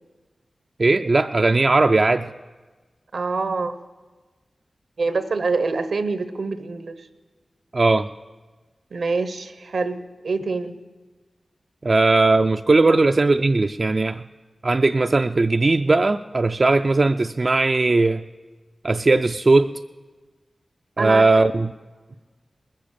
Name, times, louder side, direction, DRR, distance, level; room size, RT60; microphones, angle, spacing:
voice 1, 0.8-2.3 7.7-8.1 11.8-14.2 14.6-18.2 18.8-19.8 21.0-21.7, right 3 dB, 55° right, 7 dB, 0.3 m, -18 dB
voice 2, 3.1-3.7 5.0-7.1 8.9-10.0 10.2-10.7 12.8-13.0 21.0-21.5, right 4 dB, 80° right, 11 dB, 0.8 m, -25 dB
20.0 x 7.6 x 6.7 m, 1.3 s
cardioid pair, 40°, 0 cm